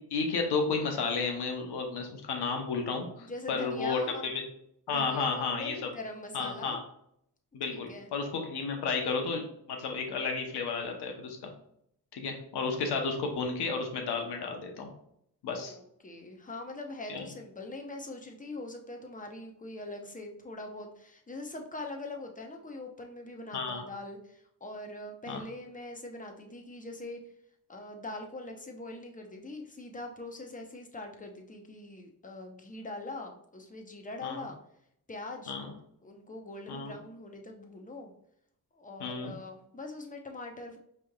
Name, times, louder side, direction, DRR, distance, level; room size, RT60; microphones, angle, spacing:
voice 1, 0.1-4.4 4.9-5.9 6.3-6.8 7.5-11.4 12.1-14.9 15.4-15.7 17.1-17.2 23.5-23.8 25.3-25.4 34.2-34.5 35.5-35.7 36.7-36.9 39.0-39.3, left 4 dB, 80° left, 3 dB, 1.0 m, -32 dB
voice 2, 3.2-4.2 4.9-6.8 7.7-8.1 15.5-27.2 27.7-34.6 35.1-35.5 36.0-38.1 38.7-40.8, left 2 dB, 20° left, 2 dB, 0.9 m, -42 dB
5.0 x 3.3 x 2.3 m, 0.72 s
cardioid pair, 70°, 39 cm